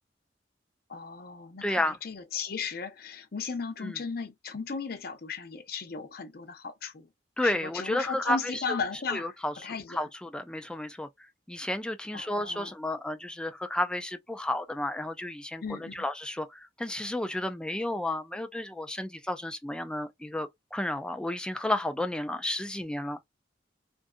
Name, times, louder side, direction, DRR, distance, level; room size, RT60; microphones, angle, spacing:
voice 1, 0.9-7.1 7.4-10.1 12.1-12.7 15.6-16.0, left 5 dB, 55° left, 0.6 m, -36 dB
voice 2, 1.6-2.0 3.8-4.0 7.4-8.8 9.1-9.5 9.9-11.1 11.5-23.2, left 1 dB, 5° left, 0.3 m, -32 dB
2.6 x 2.4 x 2.2 m
head